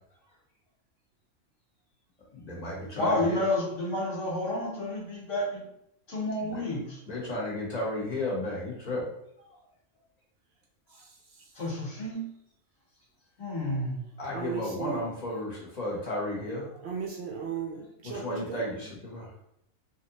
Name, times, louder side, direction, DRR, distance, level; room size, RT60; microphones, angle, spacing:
voice 1, 2.3-3.4 6.4-6.6 7.1-9.1 14.2-16.7 18.1-19.2, left 1 dB, 35° left, -4 dB, 0.9 m, -33 dB
voice 2, 2.9-5.6 6.1-7.0 11.6-12.2 13.4-14.0, left 1 dB, 65° left, -3 dB, 1.3 m, -30 dB
voice 3, 14.3-15.0 16.8-18.6, right 6 dB, 65° right, -1 dB, 0.7 m, -36 dB
3.0 x 2.7 x 2.8 m, 0.76 s
omnidirectional pair, 1.4 m